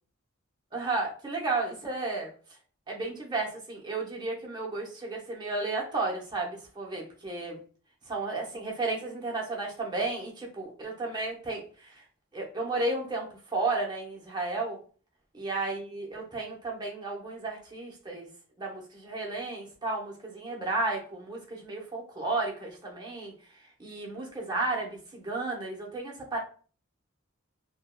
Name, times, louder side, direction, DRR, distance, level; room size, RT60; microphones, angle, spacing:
voice 1, 0.7-2.3 2.9-7.6 8.1-11.9 12.3-14.8 15.4-18.3 18.6-23.3 23.8-26.4, right 3 dB, 20° right, -2 dB, 0.7 m, -33 dB
3.4 x 2.1 x 2.2 m, 0.40 s
head